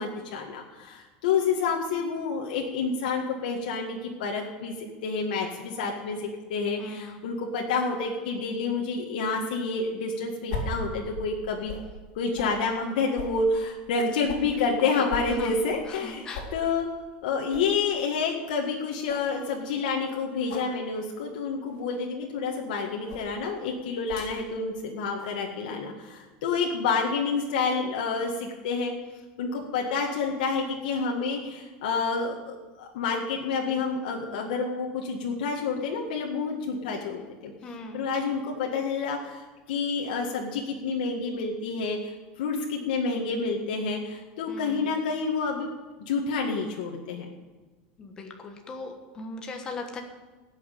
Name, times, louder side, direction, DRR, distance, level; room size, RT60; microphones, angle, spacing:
voice 1, 0.0-4.7 5.0-11.7 12.2-16.9 17.2-28.9 29.4-37.5 37.9-42.1 42.4-45.7 46.0-47.3, left 4 dB, 80° left, 0 dB, 1.9 m, -29 dB
voice 2, 6.8-7.2 14.9-15.0 15.4-15.5 15.9-16.4 37.6-38.0 44.5-44.9 48.0-50.0, left 2 dB, 15° left, 3 dB, 1.2 m, -38 dB
sound 1, 10.5-11.9 12.3-12.5 13.2-14.5 15.1-16.1 16.3-16.6 17.0-17.1 17.5-17.7 18.2-18.3 18.7-18.8 19.1-19.3 20.4-20.7 21.7-21.9 23.0-23.3 24.1-24.4 25.2-25.4, left 2 dB, 60° left, 3.7 m, -38 dB
16.5 x 6.5 x 9.2 m, 1.3 s
supercardioid pair, 180°, 5 cm